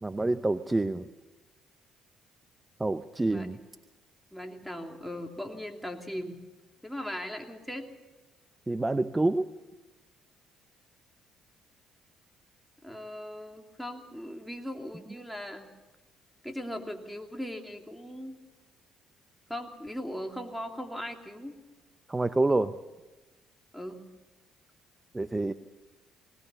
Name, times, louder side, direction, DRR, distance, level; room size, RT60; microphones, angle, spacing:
voice 1, 0.0-1.0 2.8-3.6 8.7-9.5 22.1-22.7 25.1-25.5, right 2 dB, 20° right, 12 dB, 0.8 m, -27 dB
voice 2, 4.3-6.4 6.8-7.9 12.8-15.7 16.4-18.4 19.5-21.5 23.7-24.0, equal, ahead, 3 dB, 2.9 m, -39 dB
20.0 x 19.5 x 7.1 m, 1.1 s
hypercardioid pair, 55°, 0 cm